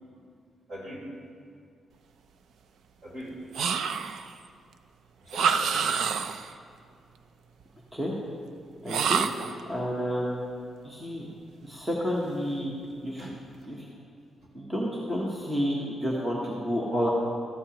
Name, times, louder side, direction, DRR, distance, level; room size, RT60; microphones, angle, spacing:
voice 1, 0.7-1.0 3.0-3.3 5.2-5.7 6.8-6.9 13.2-13.3 13.8-13.9 14.4-14.5 16.1-16.4 16.7-16.9, equal, 45° right, -4 dB, 3.5 m, -42 dB
sound 1, 3.5-4.3 5.3-6.5 8.9-9.6, right 6 dB, 70° right, 0.4 m, -27 dB
voice 2, 8.8-9.2 9.7-10.4 10.8-11.3 11.6-12.7 13.0-13.3 13.7-13.9 14.5-17.1, equal, 10° right, -4 dB, 1.0 m, -30 dB
13.5 x 13.0 x 2.9 m, 2.2 s
wide cardioid pair, 175°, 0 cm